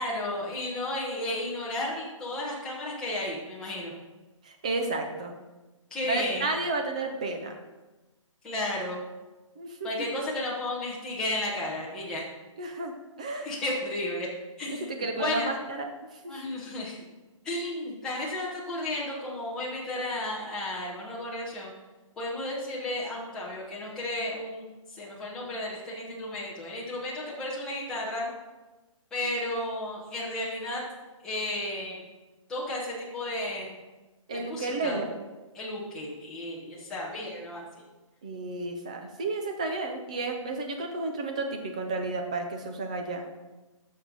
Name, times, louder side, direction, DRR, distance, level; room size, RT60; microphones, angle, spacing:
voice 1, 0.0-3.9 5.9-6.5 8.4-9.0 9.8-12.2 13.4-14.3 14.6-15.5 16.3-17.0 17.4-21.7 22.2-28.3 29.1-30.8 31.2-32.1 32.5-33.7 34.3-35.0 35.5-37.6, left 1 dB, 5° left, -7 dB, 1.1 m, -33 dB
voice 2, 4.4-5.3 6.1-7.6 9.6-9.9 12.6-13.5 14.7-16.4 34.3-35.1 38.2-43.2, right 3 dB, 15° right, 4 dB, 0.4 m, -32 dB
13.0 x 6.3 x 4.0 m, 1.2 s
hypercardioid pair, 175°, 17 cm